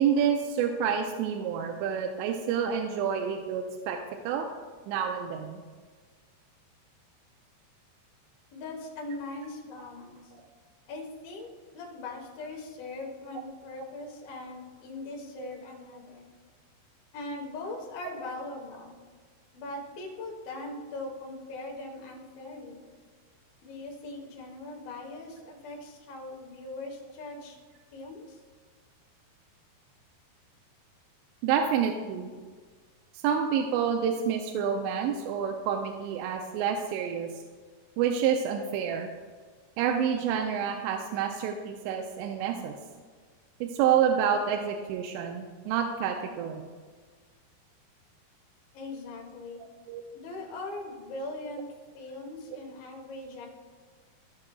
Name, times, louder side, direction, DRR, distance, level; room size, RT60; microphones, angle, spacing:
voice 1, 0.0-4.0 4.2-4.5 4.9-5.6 10.3-10.4 15.4-15.5 31.4-32.3 33.1-37.3 38.0-39.1 39.8-42.7 43.6-46.7 49.9-50.0, right 8 dB, 90° right, 3 dB, 2.8 m, -28 dB
voice 2, 8.5-10.2 10.9-16.3 17.1-19.0 19.5-22.9 23.6-27.6 27.9-28.4 48.7-49.6 50.1-51.7 51.9-53.5, left 2 dB, 70° left, 1 dB, 2.8 m, -40 dB
16.0 x 5.8 x 2.3 m, 1.5 s
omnidirectional pair, 4.9 m